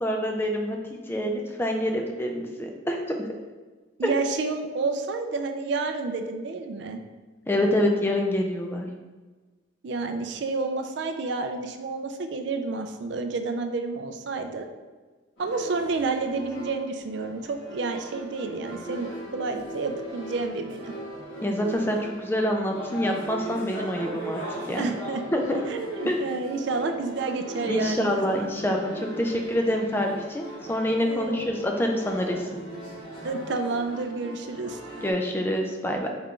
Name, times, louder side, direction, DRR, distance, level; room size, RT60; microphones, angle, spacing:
voice 1, 0.0-3.3 4.0-4.1 7.5-8.9 21.4-24.4 24.7-24.9 25.3-25.6 26.1-26.2 27.6-32.6 35.0-36.1, left 1 dB, 10° left, 2 dB, 0.3 m, -26 dB
voice 2, 4.0-7.0 9.8-14.7 15.4-20.9 24.8-25.2 25.5-28.5 31.1-31.4 33.2-34.8, right 3 dB, 60° right, 6 dB, 0.4 m, -30 dB
sound 1, 15.4-35.1, right 1 dB, 70° left, 1.3 m, -39 dB
4.4 x 2.5 x 3.6 m, 1.3 s
head